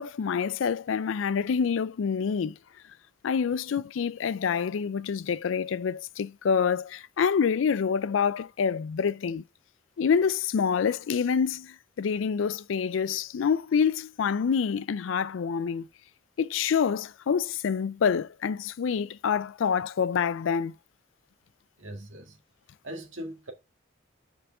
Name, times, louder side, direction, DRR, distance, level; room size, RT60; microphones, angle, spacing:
voice 1, 0.0-2.5 3.2-9.4 10.0-15.9 16.4-20.7, left 6 dB, 80° left, 0.4 m, -27 dB
voice 2, 21.8-22.4 22.8-23.5, right 1 dB, 80° right, 1.8 m, -40 dB
7.0 x 5.0 x 3.5 m
head